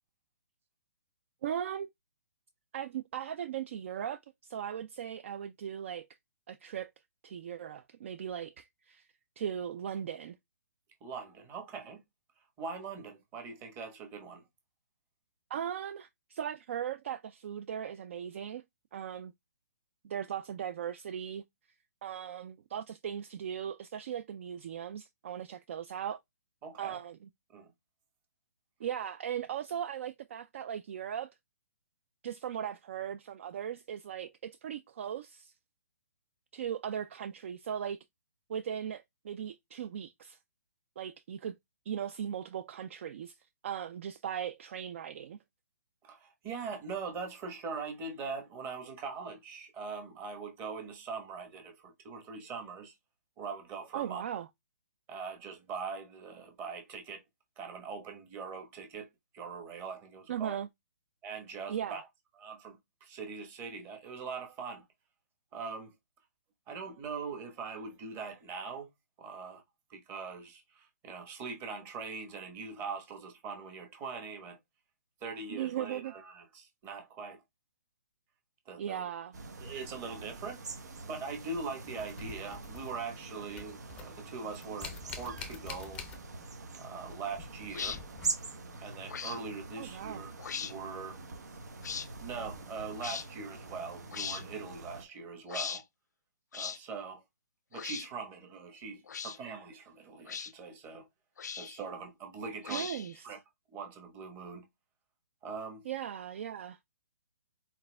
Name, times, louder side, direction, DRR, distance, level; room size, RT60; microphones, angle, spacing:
voice 1, 1.4-1.9 2.7-6.1 6.5-6.9 7.2-9.1 9.4-10.4 15.5-18.6 18.9-19.3 20.0-21.4 22.0-26.2 26.8-27.2 28.8-31.3 32.2-35.5 36.5-38.0 38.5-40.4 41.0-41.5 41.9-43.4 43.6-45.4 53.9-54.5 60.3-60.7 61.7-62.0 75.5-76.1 78.8-79.3 89.8-90.2 102.7-103.4 105.9-106.8, right 9 dB, 50° right, 0.4 m, -38 dB
voice 2, 11.0-12.0 12.6-14.4 26.6-27.0 27.5-27.7 46.0-52.9 53.4-54.2 55.1-57.2 57.6-59.1 59.3-60.6 61.2-62.0 62.4-64.8 65.5-65.9 66.7-68.9 69.2-69.6 69.9-74.6 75.2-77.4 78.7-79.1 79.6-80.6 81.0-86.0 86.7-88.0 88.8-91.2 92.2-95.8 96.5-97.2 97.7-101.1 101.6-102.9 103.2-103.4 103.7-104.7 105.4-105.8, right 5 dB, 20° right, 1.2 m, -42 dB
sound 1, 79.3-95.0, right 3 dB, 80° right, 1.3 m, -44 dB
sound 2, 81.6-83.2 83.5-86.7 86.9-88.7 90.6-90.7 91.5-91.7, left 6 dB, 10° left, 0.5 m, -48 dB
sound 3, 87.7-88.0 89.1-89.4 90.4-90.7 91.8-92.1 93.0-93.3 94.1-94.4 95.5-95.8 96.5-96.8 97.7-98.1 99.1-99.4 100.3-100.5 101.4-101.8 102.6-103.2, left 7 dB, 85° left, 0.4 m, -38 dB
4.4 x 4.2 x 2.3 m
hypercardioid pair, 155°, 9 cm